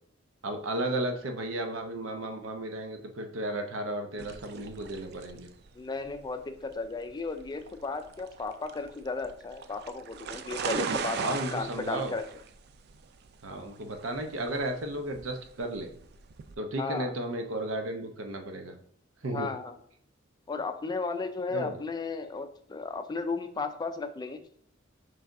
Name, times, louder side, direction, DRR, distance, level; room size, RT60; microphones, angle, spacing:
voice 1, 0.4-5.5 11.2-12.1 13.4-15.9 16.6-18.7 19.2-19.5 21.5-21.8, right 1 dB, 85° right, 5 dB, 0.8 m, -34 dB
sound 1, 4.2-16.6, right 6 dB, 55° right, 0.4 m, -39 dB
voice 2, 5.8-12.2 16.8-17.1 19.3-19.7 20.5-24.4, left 4 dB, 20° left, 8 dB, 0.3 m, -35 dB
6.1 x 3.3 x 2.6 m, 0.65 s
head